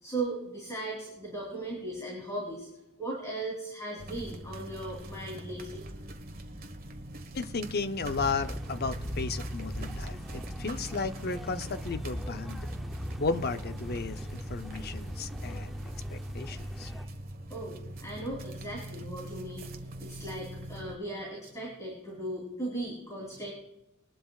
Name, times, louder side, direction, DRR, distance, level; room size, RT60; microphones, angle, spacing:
voice 1, 0.0-2.7 3.0-5.8 16.5-17.1 17.5-23.5, right 2 dB, 15° left, -3 dB, 3.3 m, -38 dB
sound 1, 4.0-21.0, right 1 dB, 45° right, 1.4 m, -42 dB
voice 2, 7.3-12.7 13.2-15.7 16.1-16.9, left 4 dB, 50° left, 9 dB, 0.7 m, -34 dB
sound 2, 8.0-17.1, equal, ahead, 0.7 m, -40 dB
21.5 x 12.0 x 2.4 m, 0.91 s
head